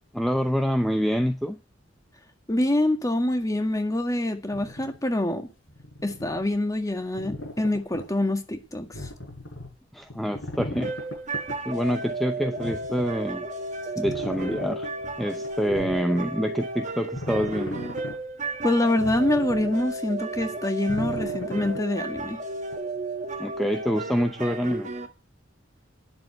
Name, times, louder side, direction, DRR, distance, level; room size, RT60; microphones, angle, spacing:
voice 1, 0.1-1.6 9.9-10.9 11.6-13.5 14.0-14.9 15.2-17.8 23.4-24.9, equal, ahead, 0.7 m, -26 dB
voice 2, 2.5-5.5 6.0-9.1 18.6-22.4, left 1 dB, 20° left, 1.7 m, -25 dB
sound 1, 4.5-5.0 5.7-6.4 7.2-8.1 8.9-9.7 10.1-11.6 12.1-12.2 12.6-13.2 14.0-14.9 15.4-16.3 17.1-18.2 18.7-19.8 20.9-21.8 22.7-22.8, left 1 dB, 85° left, 7.3 m, -37 dB
sound 2, 10.8-25.1, right 2 dB, 40° right, 1.5 m, -33 dB
10.5 x 7.1 x 9.1 m
head